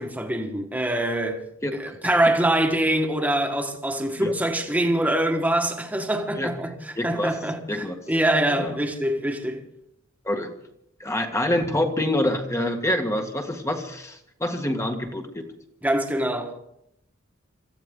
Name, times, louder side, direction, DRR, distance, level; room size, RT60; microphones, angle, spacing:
voice 1, 0.0-1.4 1.8-9.6 15.8-16.6, right 1 dB, 10° right, 1.7 m, -24 dB
voice 2, 6.9-7.3 7.7-8.0 8.5-8.8 10.2-10.5 11.0-15.5, left 1 dB, 15° left, 1.6 m, -26 dB
26.0 x 15.0 x 3.8 m
head